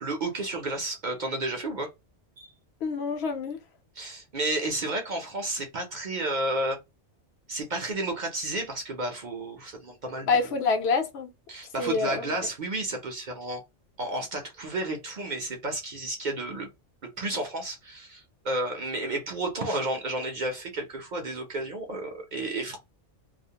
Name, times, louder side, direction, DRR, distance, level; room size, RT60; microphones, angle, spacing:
voice 1, 0.0-1.9 2.4-2.5 4.0-6.8 7.5-10.4 11.5-13.6 14.0-16.7 17.2-22.8, right 2 dB, 50° right, 0.6 m, -32 dB
voice 2, 2.8-3.6 10.3-11.3 11.8-12.4, left 4 dB, 70° left, 0.9 m, -26 dB
2.4 x 2.1 x 2.7 m
omnidirectional pair, 1.2 m